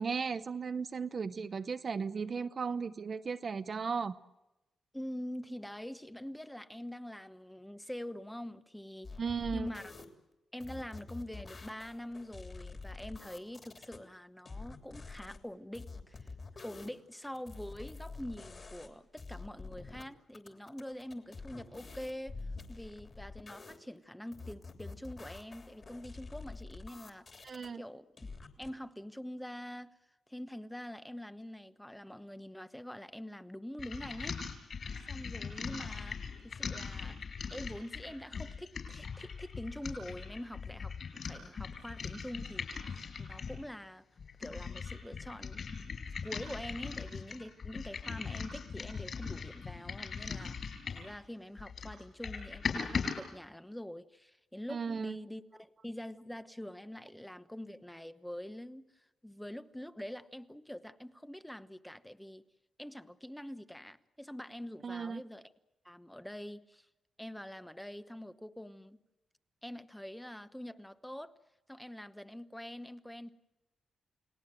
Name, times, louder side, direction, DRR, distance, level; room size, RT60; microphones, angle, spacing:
voice 1, 0.0-4.2 9.2-9.7 27.4-27.8 54.7-55.2 64.8-65.2, right 5 dB, 40° right, 0.8 m, -36 dB
voice 2, 4.9-9.1 9.5-9.9 10.5-16.3 16.6-22.4 22.7-27.3 27.7-28.1 28.6-29.9 30.3-34.4 35.1-36.2 36.4-37.2 37.5-44.0 44.4-58.9 59.2-62.4 62.8-65.5 65.8-66.8 67.2-69.0 69.6-71.3 71.7-73.3, left 1 dB, 5° left, 1.0 m, -45 dB
sound 1, 9.0-10.1 10.6-14.0 14.5-15.4 15.7-17.0 17.2-18.9 19.2-20.0 20.3-23.8 24.3-27.7 28.2-28.7, left 3 dB, 35° left, 3.3 m, -47 dB
sound 2, 33.8-43.6 44.2-51.2 51.6-53.2, left 5 dB, 50° left, 6.1 m, -40 dB
30.0 x 19.0 x 7.7 m
wide cardioid pair, 130°, 0 cm